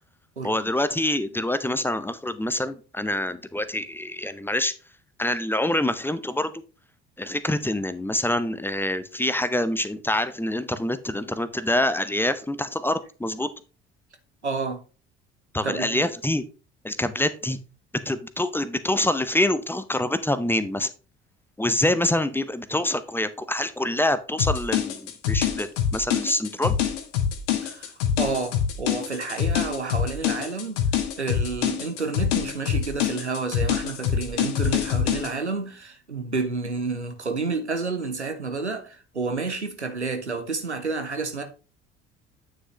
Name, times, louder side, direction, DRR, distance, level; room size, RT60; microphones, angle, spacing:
voice 1, 0.4-4.7 5.2-6.5 7.2-13.5 15.5-16.4 16.8-17.6 18.1-20.9 21.6-26.8, left 1 dB, 5° left, 0.7 m, -26 dB
voice 2, 14.4-14.8 15.6-16.0 27.6-30.8 31.2-41.4, right 4 dB, 90° right, 0.8 m, -30 dB
sound 1, 24.4-35.3, left 9 dB, 65° left, 1.4 m, -25 dB
9.4 x 6.2 x 3.1 m
figure-of-eight pair, 55°, 33 cm